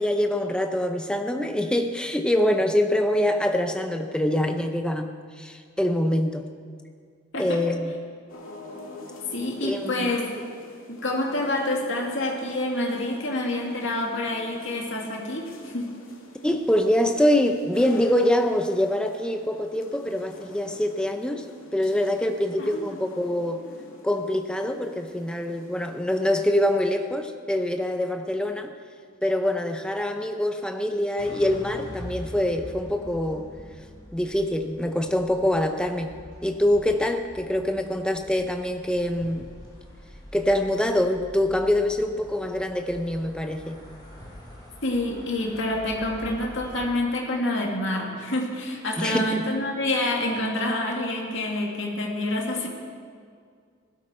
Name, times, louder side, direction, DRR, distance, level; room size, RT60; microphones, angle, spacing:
voice 1, 0.0-6.5 7.4-7.9 9.6-10.1 16.4-21.5 21.7-23.6 24.0-28.7 29.2-33.5 34.1-39.5 40.3-43.8 49.0-49.4, left 1 dB, 5° left, 6 dB, 0.6 m, -25 dB
sound 1, 8.3-26.8, left 2 dB, 80° left, 2.1 m, -48 dB
voice 2, 9.3-10.3 10.9-16.0 22.6-22.8 44.8-52.7, left 1 dB, 60° left, -1 dB, 2.2 m, -27 dB
sound 2, 31.2-46.9, left 1 dB, 20° left, 2.7 m, -44 dB
15.5 x 12.0 x 4.4 m, 2.1 s
head